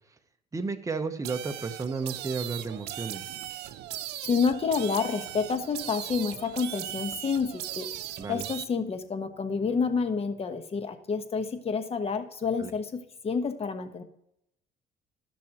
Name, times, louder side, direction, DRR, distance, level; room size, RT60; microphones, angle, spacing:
voice 1, 0.5-3.2 8.2-8.5 12.6-12.7, right 4 dB, 20° right, 7 dB, 0.9 m, -33 dB
sound 1, 1.2-8.7, right 13 dB, 80° right, 0.6 m, -38 dB
voice 2, 4.2-7.9 8.3-14.0, left 5 dB, 35° left, 8 dB, 1.2 m, -29 dB
14.5 x 6.2 x 2.9 m, 0.78 s
cardioid pair, 110°, 17 cm